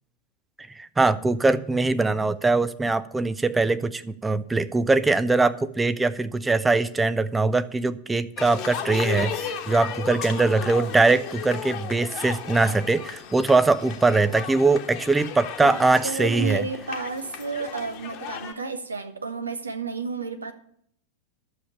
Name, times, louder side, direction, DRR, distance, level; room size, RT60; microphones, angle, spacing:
voice 1, 0.8-16.7, right 3 dB, 10° right, 0.6 m, -22 dB
sound 1, 8.4-18.5, left 8 dB, 40° left, 1.3 m, -35 dB
voice 2, 15.6-20.5, right 4 dB, 75° right, 1.1 m, -31 dB
11.5 x 7.2 x 6.7 m
figure-of-eight pair, 90°, 0 cm